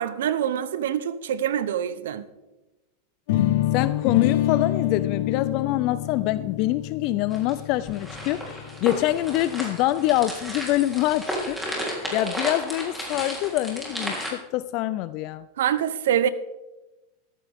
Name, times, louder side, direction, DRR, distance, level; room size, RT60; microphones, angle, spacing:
voice 1, 0.0-2.3 15.6-16.3, right 9 dB, 90° right, 0.9 m, -25 dB
sound 1, 3.3-9.2, left 13 dB, 65° left, 0.9 m, -26 dB
voice 2, 3.7-11.8 12.1-15.5, left 15 dB, 45° left, 0.4 m, -25 dB
sound 2, 7.3-14.3, equal, ahead, 3.5 m, -33 dB
14.5 x 14.0 x 3.6 m
supercardioid pair, 150°, 0 cm